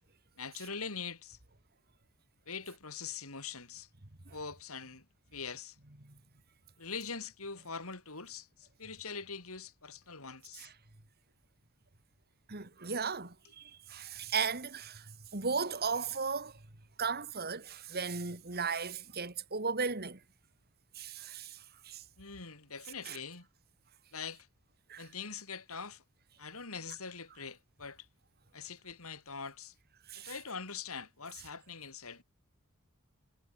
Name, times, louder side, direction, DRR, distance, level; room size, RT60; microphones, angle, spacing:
voice 1, 0.4-1.4 2.5-3.9 4.3-5.1 5.3-5.8 6.8-10.7 22.2-23.5 24.1-24.5 25.0-26.0 26.4-28.1 28.5-29.7 30.2-32.2, left 5 dB, 75° left, 5.2 m, -43 dB
voice 2, 12.5-16.6 17.0-20.2 21.0-22.0 23.1-23.2 24.9-25.1 30.1-30.3, right 5 dB, 45° right, 2.2 m, -36 dB
head